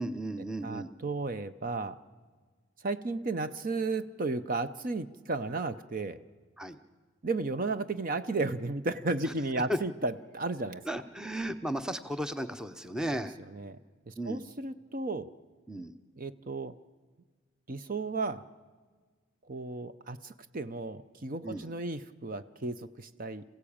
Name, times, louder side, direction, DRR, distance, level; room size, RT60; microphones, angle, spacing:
voice 1, 0.0-0.9 6.6-6.8 9.7-9.8 10.9-13.3 14.2-14.4 15.7-15.9 21.4-21.7, right 1 dB, 5° right, 10 dB, 0.7 m, -34 dB
voice 2, 0.6-2.0 2.8-6.2 7.2-10.8 13.1-13.8 14.1-15.3 16.2-16.7 17.7-18.4 19.5-23.4, right 3 dB, 40° right, 11 dB, 0.7 m, -34 dB
27.5 x 16.0 x 8.7 m, 1.5 s
head